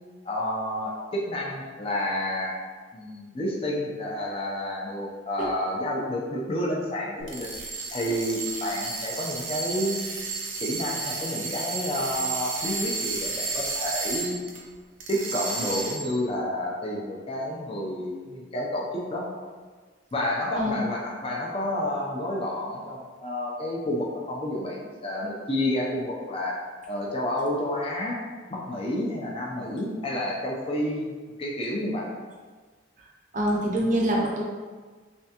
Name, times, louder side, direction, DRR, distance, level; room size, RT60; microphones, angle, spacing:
voice 1, 0.2-2.6 2.9-7.5 7.9-10.0 10.6-14.4 15.1-19.3 20.1-26.6 26.9-28.2 28.5-31.1 31.4-32.1, left 1 dB, 30° left, -3 dB, 0.5 m, -30 dB
sound 1, 7.2-14.6 15.0-16.2, right 3 dB, 85° right, 0.6 m, -32 dB
voice 2, 33.3-34.4, equal, 40° right, -2 dB, 0.6 m, -25 dB
3.4 x 3.3 x 2.8 m, 1.5 s
head